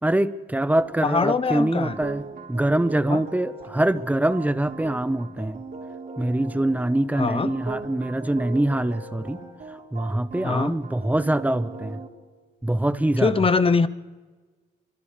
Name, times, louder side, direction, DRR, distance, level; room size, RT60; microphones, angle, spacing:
voice 1, 0.0-5.6 6.2-9.4 9.9-12.0 12.6-13.3, right 1 dB, 10° right, 12 dB, 1.1 m, -24 dB
sound 1, 0.8-12.1, right 4 dB, 50° right, 4.8 m, -39 dB
voice 2, 1.0-2.0 3.1-3.2 7.2-7.5 10.4-10.8 13.2-13.9, left 4 dB, 30° left, 14 dB, 1.0 m, -22 dB
30.0 x 25.5 x 3.4 m, 1.4 s
cardioid pair, 90°, 20 cm